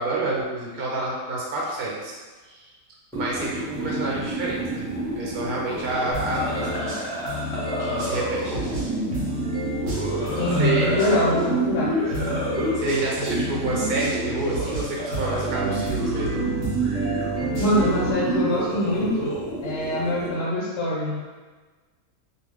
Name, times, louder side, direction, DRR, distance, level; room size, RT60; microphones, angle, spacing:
voice 1, 0.0-2.1 2.5-2.6 3.1-4.9 5.2-6.9 7.8-8.7 10.6-11.0 12.8-16.4, right 2 dB, 85° right, -4 dB, 1.1 m, -28 dB
sound 1, 3.1-20.3, right 1 dB, ahead, 1.0 m, -29 dB
sound 2, 6.1-11.5 12.1-18.1, right 1 dB, 60° right, 1.0 m, -30 dB
voice 2, 10.4-11.9 12.1-12.3 17.6-19.3 19.6-21.2, left 1 dB, 65° left, -4 dB, 1.1 m, -24 dB
2.5 x 2.3 x 3.3 m, 1.3 s
omnidirectional pair, 1.5 m